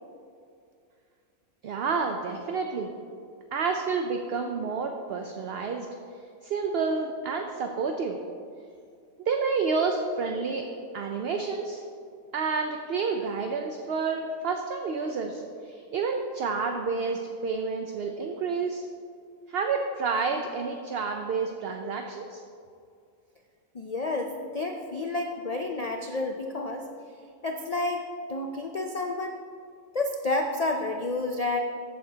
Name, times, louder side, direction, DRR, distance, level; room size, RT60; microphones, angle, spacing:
voice 1, 1.6-2.9 3.5-5.9 6.4-8.2 9.3-10.6 10.9-11.8 12.3-18.8 19.5-22.4, right 4 dB, 60° right, 4 dB, 0.7 m, -29 dB
voice 2, 23.7-26.8 27.4-29.4 29.9-31.6, left 2 dB, 75° left, 3 dB, 0.3 m, -30 dB
14.5 x 7.7 x 2.8 m, 2.3 s
omnidirectional pair, 1.5 m